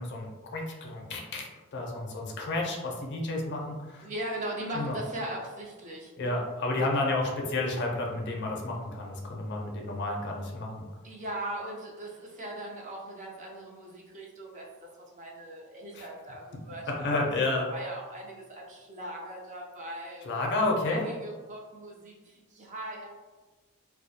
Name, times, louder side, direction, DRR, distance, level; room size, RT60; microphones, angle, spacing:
voice 1, 0.0-4.1 4.7-5.0 6.2-10.8 15.9-16.1 16.9-17.7 20.2-21.1, left 2 dB, 50° left, 0 dB, 0.4 m, -31 dB
voice 2, 4.0-6.1 11.0-14.7 15.1-17.1 17.5-20.3 20.9-23.1, right 1 dB, 35° right, -2 dB, 0.4 m, -39 dB
2.3 x 2.1 x 2.7 m, 1.3 s
head